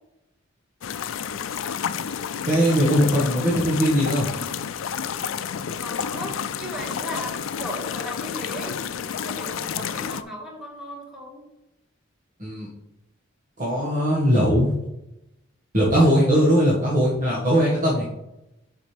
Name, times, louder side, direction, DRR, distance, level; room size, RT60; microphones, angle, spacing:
sound 1, 0.8-10.2, left 8 dB, 80° left, 0.4 m, -30 dB
voice 1, 2.5-4.3 12.4-12.7 13.6-14.7 15.7-18.1, equal, 40° right, -7 dB, 1.7 m, -20 dB
voice 2, 5.8-11.5, equal, 5° right, -3 dB, 1.8 m, -37 dB
7.3 x 6.7 x 3.4 m, 0.90 s
head